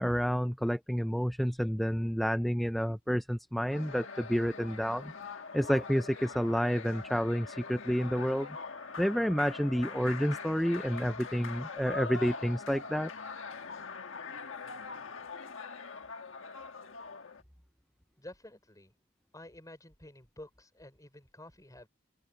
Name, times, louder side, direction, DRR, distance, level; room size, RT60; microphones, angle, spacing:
voice 1, 0.0-5.1 5.5-8.6 9.0-13.1, equal, ahead, 0.4 m, -30 dB
sound 1, 3.7-17.4, left 4 dB, 75° left, 1.5 m, -43 dB
voice 2, 18.2-18.9 19.3-21.9, left 1 dB, 15° left, 5.5 m, -50 dB
open air
head